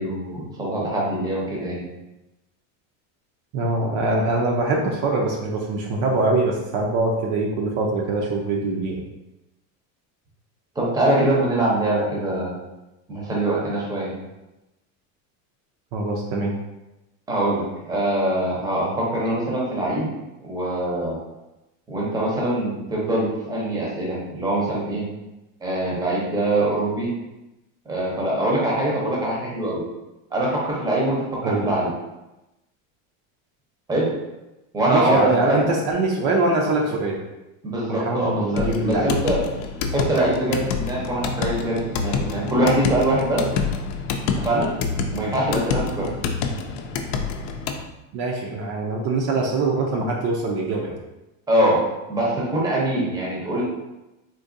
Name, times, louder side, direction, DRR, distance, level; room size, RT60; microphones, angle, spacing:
voice 1, 0.0-1.8 10.8-12.5 13.1-14.1 17.3-20.1 20.4-21.2 21.9-25.0 25.6-27.1 27.9-29.8 30.3-31.9 33.9-34.1 34.7-35.6 37.6-39.4 39.9-43.4 44.4-44.7 45.1-46.1 51.5-51.8 52.1-53.6, right 1 dB, 10° right, -4 dB, 0.7 m, -23 dB
voice 2, 3.5-9.0 15.9-16.5 31.4-31.7 34.9-37.2 37.9-39.1 46.0-46.1 48.1-51.0, right 2 dB, 50° right, 0 dB, 0.6 m, -23 dB
sound 1, 38.6-47.8, left 5 dB, 70° left, 0.5 m, -27 dB
3.8 x 2.6 x 2.6 m, 0.99 s
cardioid pair, 150°, 39 cm